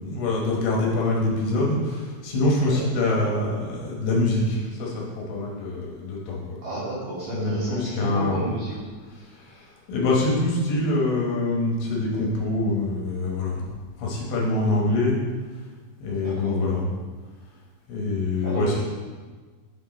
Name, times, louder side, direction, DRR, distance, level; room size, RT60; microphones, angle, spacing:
voice 1, 0.0-6.6 7.2-8.4 9.1-13.6 14.0-15.2 16.0-16.9 17.9-18.8, left 2 dB, 70° left, -3 dB, 2.8 m, -25 dB
voice 2, 6.6-8.7 16.2-16.6 18.4-18.8, right 2 dB, 65° right, -7 dB, 2.4 m, -32 dB
7.4 x 4.4 x 4.2 m, 1.4 s
omnidirectional pair, 5.3 m